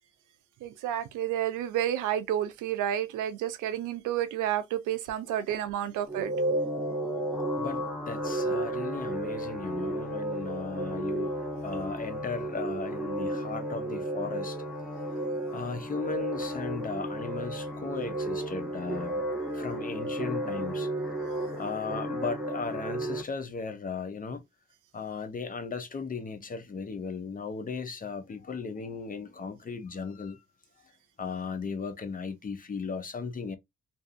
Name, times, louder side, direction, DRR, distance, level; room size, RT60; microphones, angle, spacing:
voice 1, 0.6-6.3, right 11 dB, 85° right, 0.5 m, -30 dB
sound 1, 6.1-23.2, right 1 dB, 5° right, 1.3 m, -33 dB
voice 2, 7.6-11.4 11.6-14.6 15.5-19.2 19.5-20.9 21.6-24.4 24.9-30.4 31.2-33.6, left 5 dB, 30° left, 0.6 m, -36 dB
2.6 x 2.4 x 2.5 m
cardioid pair, 90°, 30 cm